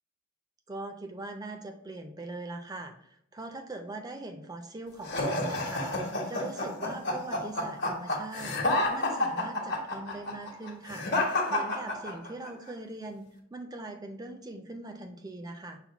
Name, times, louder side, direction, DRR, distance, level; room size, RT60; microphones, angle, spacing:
voice 1, 0.7-11.1 11.5-15.8, right 2 dB, 20° right, 6 dB, 0.4 m, -41 dB
sound 1, 5.0-12.5, left 2 dB, 55° left, 1.0 m, -29 dB
5.8 x 2.2 x 3.9 m, 0.72 s
head